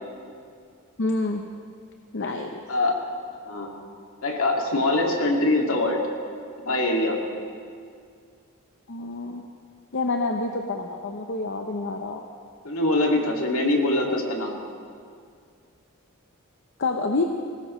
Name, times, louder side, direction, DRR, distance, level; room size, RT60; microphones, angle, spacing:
voice 1, 1.0-1.4 2.1-2.5 8.9-9.4 9.9-12.3 16.8-17.2, left 3 dB, 55° left, 3 dB, 0.8 m, -27 dB
voice 2, 2.7-3.0 3.5-3.8 4.2-6.0 6.6-7.2 12.6-14.6, left 2 dB, 75° left, 0 dB, 2.3 m, -23 dB
21.0 x 18.5 x 3.2 m, 2.2 s
head